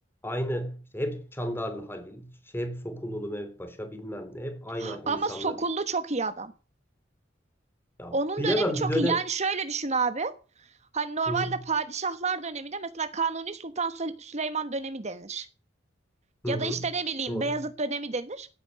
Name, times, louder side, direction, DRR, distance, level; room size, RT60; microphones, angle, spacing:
voice 1, 0.2-2.3 2.5-5.6 8.0-9.2 11.3-11.5 16.4-16.8 17.3-17.6, equal, 10° left, 3.0 m, -32 dB
voice 2, 4.8-6.5 8.1-10.3 10.6-10.7 10.9-15.5 16.5-18.5, right 4 dB, 35° right, 1.1 m, -30 dB
17.0 x 9.3 x 6.4 m
head